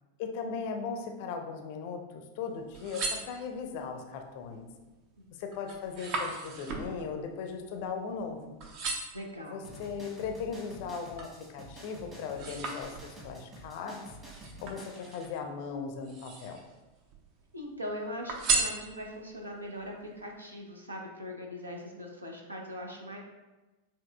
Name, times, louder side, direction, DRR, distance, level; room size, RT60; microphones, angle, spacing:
voice 1, 0.2-4.7 5.4-8.6 9.5-14.0 14.6-16.6, left 5 dB, 50° left, 5 dB, 0.5 m, -38 dB
sound 1, 2.6-3.9 4.4-4.8 5.2-8.3 8.6-9.3 9.9-11.4 11.8-13.4 14.3-15.4 15.9-16.7 17.1-17.8 18.3-19.3 19.9-20.0, right 4 dB, 40° right, 0.6 m, -36 dB
voice 2, 9.1-9.7 17.5-23.2, equal, 80° right, 1 dB, 0.8 m, -41 dB
sound 2, 9.6-15.3, equal, 25° right, 1.3 m, -49 dB
7.0 x 2.9 x 2.3 m, 1.1 s
figure-of-eight pair, 90°, 0 cm